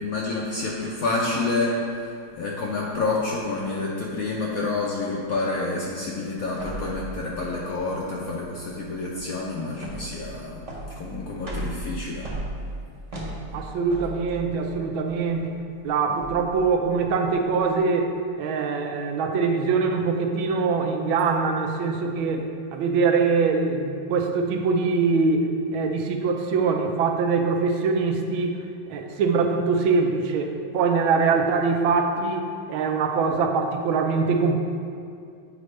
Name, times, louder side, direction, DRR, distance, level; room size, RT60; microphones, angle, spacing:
voice 1, 0.0-12.3, left 3 dB, 70° left, -3 dB, 0.8 m, -28 dB
sound 1, 6.6-17.7, right 1 dB, 30° right, 0.7 m, -37 dB
voice 2, 13.5-15.5 15.8-22.4 22.7-25.5 25.7-28.6 28.9-34.6, right 4 dB, 85° right, 4 dB, 1.4 m, -23 dB
8.2 x 5.0 x 3.2 m, 2.3 s
omnidirectional pair, 2.2 m